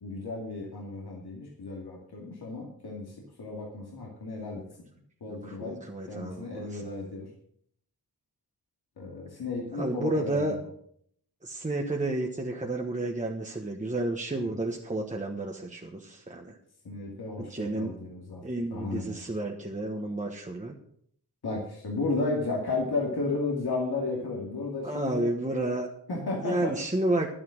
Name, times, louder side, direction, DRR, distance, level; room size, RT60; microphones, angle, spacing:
voice 1, 0.0-4.6 5.2-5.8 6.1-7.3 9.0-10.6 14.4-14.5 16.8-18.4 18.7-19.2 21.4-25.3 26.1-26.7, left 3 dB, 90° left, -2 dB, 2.4 m, -33 dB
voice 2, 5.3-6.8 9.8-10.5 11.4-16.6 17.4-18.0 18.4-20.7 24.8-25.9 26.4-27.3, right 2 dB, 20° right, 1 dB, 1.3 m, -31 dB
11.5 x 8.9 x 6.5 m, 0.66 s
wide cardioid pair, 110°, 37 cm